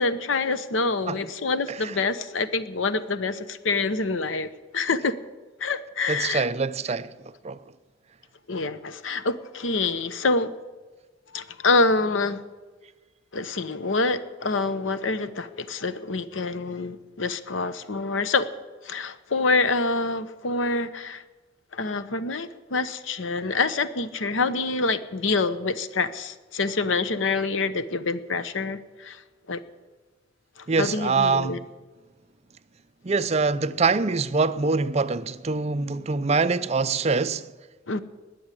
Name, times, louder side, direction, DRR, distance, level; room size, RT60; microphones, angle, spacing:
voice 1, 0.0-5.1 5.6-6.5 8.5-10.5 11.3-12.4 13.3-18.5 18.8-21.2 21.7-29.2 29.5-29.6 30.6-31.6 37.9-38.0, left 3 dB, 85° left, 0.9 m, -26 dB
voice 2, 6.1-7.1 7.4-7.6 30.7-31.6 33.0-37.5, right 4 dB, 35° right, 0.5 m, -24 dB
19.5 x 7.2 x 9.8 m
head